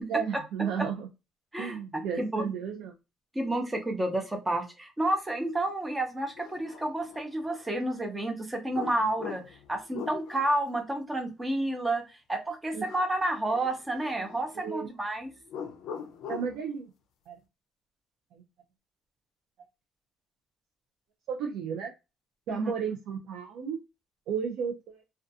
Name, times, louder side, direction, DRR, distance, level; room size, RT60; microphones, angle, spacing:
voice 1, 0.1-1.1 1.6-2.9 12.7-12.8 14.6-14.9 16.3-16.9 17.3-17.4 18.3-18.4 21.3-21.9 22.5-23.8 24.3-25.0, right 7 dB, 80° right, 2 dB, 0.4 m, -33 dB
voice 2, 1.5-2.5 3.3-9.4 9.7-15.3 22.5-22.7, right 1 dB, 10° right, 5 dB, 0.5 m, -30 dB
sound 1, 5.7-5.8 6.4-7.7 8.7-10.7 12.9-13.3 13.5-14.7 15.5-16.6, left 7 dB, 70° left, 0.4 m, -42 dB
2.3 x 2.2 x 2.6 m, 0.26 s
cardioid pair, 160°, 0 cm